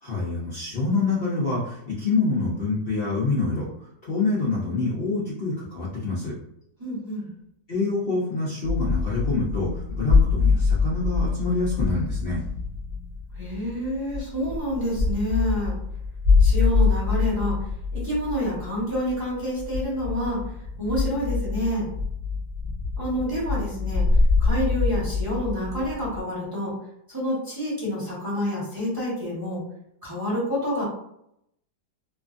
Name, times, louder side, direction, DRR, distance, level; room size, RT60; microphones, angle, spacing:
voice 1, 0.0-3.7 4.0-6.4 7.7-12.4, left 3 dB, 85° left, -7 dB, 0.5 m, -26 dB
voice 2, 6.8-7.3 13.4-15.7 16.4-17.6 17.9-20.4 20.8-21.9 23.0-24.0 24.4-26.7 27.1-29.6 30.0-30.8, equal, 15° right, -8 dB, 0.9 m, -28 dB
sound 1, 8.6-26.2, left 4 dB, 40° right, 0.6 m, -25 dB
2.8 x 2.5 x 2.4 m, 0.75 s
omnidirectional pair, 1.9 m